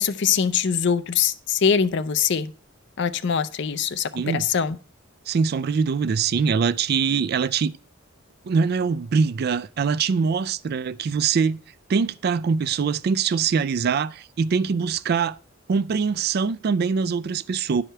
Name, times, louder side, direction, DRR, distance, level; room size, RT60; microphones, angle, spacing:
voice 1, 0.0-2.5 3.0-4.8, left 7 dB, 60° left, 0.5 m, -23 dB
voice 2, 4.1-4.5 5.3-7.7 8.4-11.6 11.9-15.4 15.7-17.8, right 5 dB, 50° right, 0.3 m, -23 dB
10.0 x 4.9 x 4.5 m
head